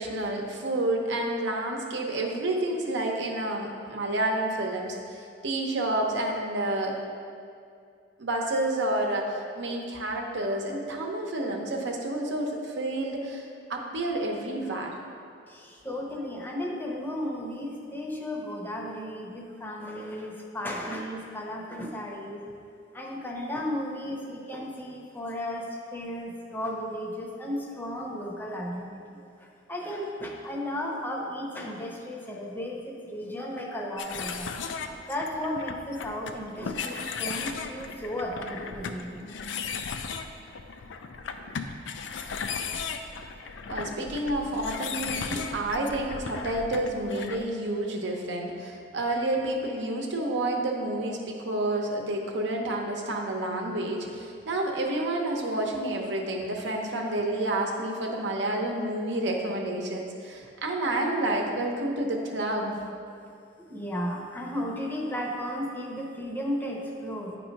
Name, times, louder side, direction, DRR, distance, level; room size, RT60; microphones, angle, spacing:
voice 1, 0.0-7.0 8.2-14.9 43.7-62.8, right 1 dB, 70° right, 1 dB, 0.8 m, -29 dB
voice 2, 15.5-22.4 22.9-29.0 29.4-34.5 35.1-39.2 63.7-67.4, left 1 dB, 10° left, -1 dB, 0.8 m, -34 dB
sound 1, 34.0-47.4, left 5 dB, 75° left, 0.4 m, -36 dB
8.9 x 3.0 x 5.2 m, 2.4 s
head